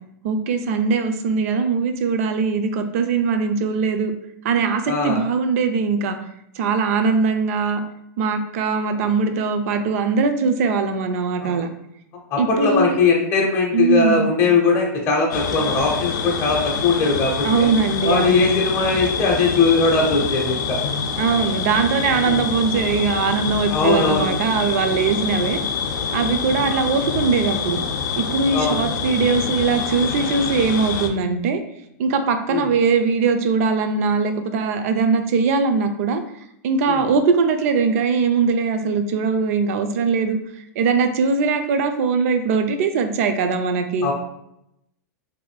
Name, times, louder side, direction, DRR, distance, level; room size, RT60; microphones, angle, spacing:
voice 1, 0.2-4.1 4.4-6.2 6.6-7.8 8.2-11.7 12.4-13.0 13.7-14.3 17.4-18.5 21.2-25.6 26.1-27.8 28.2-31.6 32.0-36.2 36.6-40.4 40.8-44.1, right 5 dB, 50° right, 8 dB, 0.4 m, -21 dB
voice 2, 4.9-5.2 11.4-11.6 12.3-17.7 18.0-20.8 22.2-22.4 23.7-24.3 24.9-25.1 26.4-26.6 28.5-28.8 32.5-32.7 36.9-37.0 44.0-44.1, left 4 dB, 25° left, -1 dB, 0.6 m, -20 dB
sound 1, 15.3-31.1, left 6 dB, 85° left, 0.5 m, -26 dB
2.6 x 2.5 x 3.2 m, 0.77 s
supercardioid pair, 155°, 10 cm